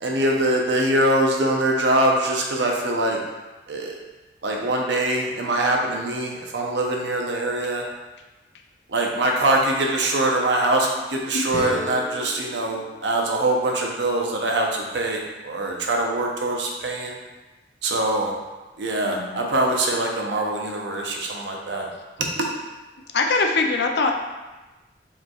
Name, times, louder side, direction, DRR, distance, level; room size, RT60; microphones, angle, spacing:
voice 1, 0.0-3.2 3.7-4.0 4.4-7.8 8.9-17.2 17.8-18.4 18.8-21.9 22.4-22.5, right 1 dB, 80° right, 0 dB, 0.6 m, -23 dB
sound 1, 11.5-14.4, left 2 dB, 20° left, 0.7 m, -37 dB
voice 2, 19.0-19.5 23.1-24.1, left 3 dB, 70° left, 3 dB, 0.4 m, -22 dB
4.8 x 3.1 x 2.3 m, 1.1 s
head